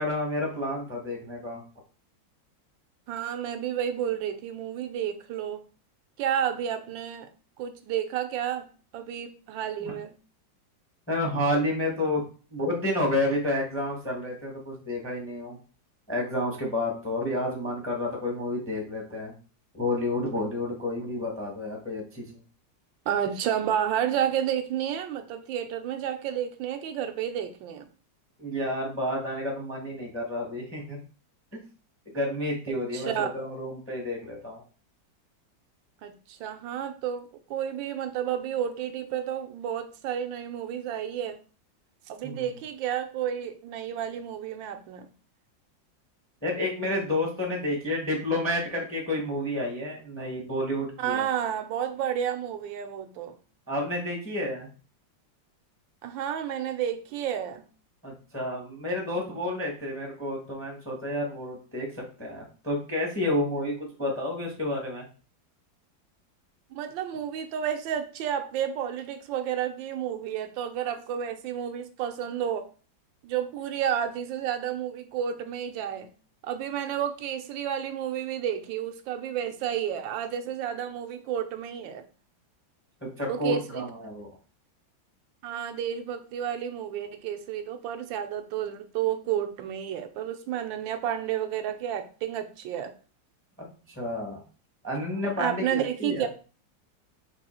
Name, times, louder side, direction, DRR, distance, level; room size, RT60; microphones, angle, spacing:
voice 1, 0.0-1.6 9.8-9.9 11.1-12.2 12.5-15.6 16.1-19.3 19.7-22.4 28.4-31.0 31.5-31.6 32.1-34.6 42.2-42.4 46.4-51.3 53.7-54.7 58.0-65.0 83.0-84.3 93.6-93.7 93.9-94.4 94.8-96.3, left 1 dB, 10° left, 0 dB, 0.6 m, -30 dB
voice 2, 3.1-5.6 6.2-7.3 7.6-8.7 8.9-10.1 23.1-27.9 32.9-33.4 36.0-41.4 42.1-45.1 51.0-53.4 56.0-57.6 66.7-72.7 73.2-76.1 76.4-82.0 83.3-83.9 85.4-92.9 95.4-96.3, right 9 dB, 80° right, 8 dB, 1.3 m, -31 dB
4.2 x 2.7 x 4.2 m, 0.37 s
omnidirectional pair, 2.1 m